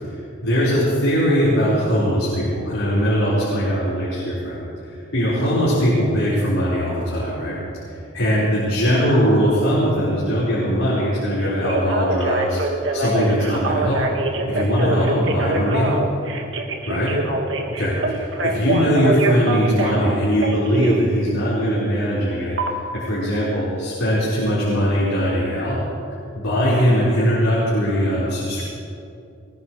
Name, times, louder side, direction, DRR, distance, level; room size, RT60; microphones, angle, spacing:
voice 1, 0.4-4.6 5.1-7.6 8.1-14.1 14.5-15.9 16.9-17.1 17.8-25.8 26.3-28.6, equal, 85° left, -9 dB, 4.7 m, -20 dB
Telephone, 11.4-21.0 22.6-22.7, right 2 dB, 65° right, 1.7 m, -24 dB
21.5 x 20.5 x 3.2 m, 2.5 s
head